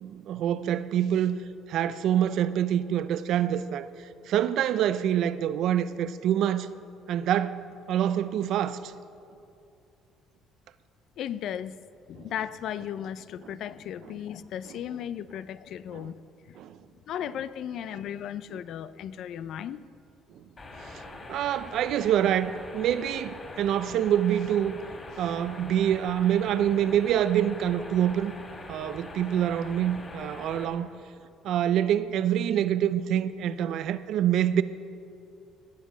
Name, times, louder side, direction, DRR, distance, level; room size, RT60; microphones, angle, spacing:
voice 1, 0.0-1.4 1.7-3.9 4.3-6.7 7.1-7.6 7.9-8.9 12.2-12.3 15.9-16.1 16.6-16.8 21.3-24.8 25.2-28.3 28.7-30.9 31.4-34.6, right 10 dB, 65° right, 0.6 m, -26 dB
voice 2, 11.2-11.8 12.1-16.6 17.1-19.8, left 9 dB, 65° left, 0.5 m, -36 dB
sound 1, 20.6-30.7, left 2 dB, 30° left, 3.1 m, -43 dB
19.0 x 7.5 x 7.3 m
cardioid pair, 115°, 0 cm